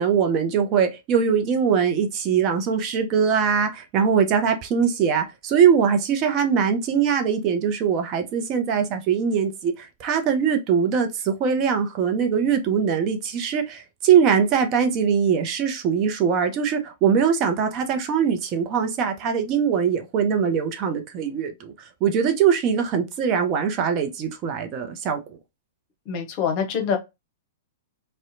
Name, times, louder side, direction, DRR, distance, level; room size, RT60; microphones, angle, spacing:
voice 1, 0.0-25.4, right 7 dB, 35° right, 0.5 m, -22 dB
voice 2, 26.1-27.0, left 7 dB, 45° left, 0.7 m, -25 dB
2.7 x 2.1 x 2.6 m
hypercardioid pair, 110°, 0 cm